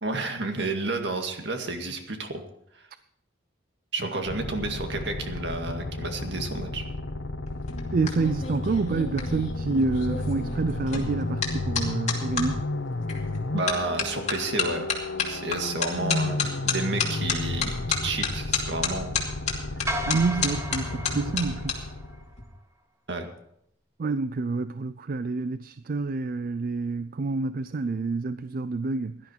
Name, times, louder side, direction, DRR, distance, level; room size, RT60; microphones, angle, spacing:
voice 1, 0.0-2.4 2.7-2.8 3.9-6.9 13.5-14.9 15.3-16.4 16.6-19.2 23.1-23.3, right 2 dB, 70° right, 1.9 m, -31 dB
sound 1, 4.3-22.3, left 2 dB, 80° left, 0.9 m, -32 dB
sound 2, 7.5-12.5 13.1-13.4 13.7-21.7 22.0-22.4, left 5 dB, 40° left, 2.6 m, -30 dB
voice 2, 7.9-12.6 20.1-21.9 24.0-29.2, right 3 dB, 50° right, 0.4 m, -28 dB
sound 3, 19.9-22.2, right 1 dB, 15° right, 1.1 m, -34 dB
16.5 x 11.5 x 4.5 m
head